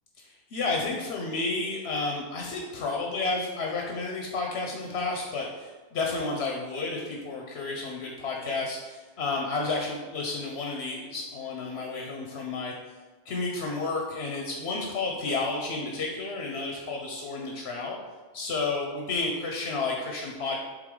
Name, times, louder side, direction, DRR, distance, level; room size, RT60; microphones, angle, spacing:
voice 1, 0.2-12.7 13.2-18.0 18.3-20.6, left 3 dB, 85° left, 0 dB, 1.1 m, -31 dB
7.9 x 3.7 x 3.8 m, 1.3 s
omnidirectional pair, 1.1 m